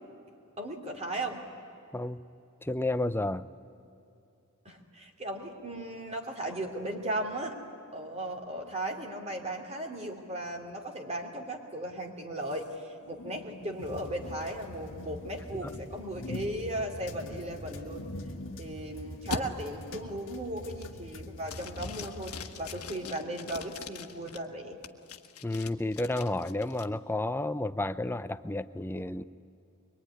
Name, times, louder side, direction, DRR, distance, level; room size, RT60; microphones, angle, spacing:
voice 1, 0.6-1.4 4.6-7.6 7.9-18.0 18.6-24.8, right 1 dB, 30° right, 2 dB, 3.0 m, -36 dB
voice 2, 2.6-3.5 25.4-29.2, left 2 dB, 10° left, 11 dB, 0.6 m, -31 dB
sound 1, 12.5-18.8 19.3-19.4 19.9-20.3 20.7-21.1 21.4-24.4 24.8-26.8, left 3 dB, 80° left, 1.4 m, -43 dB
sound 2, 13.8-22.9, left 1 dB, 60° left, 1.8 m, -46 dB
23.5 x 23.0 x 9.8 m, 2.7 s
head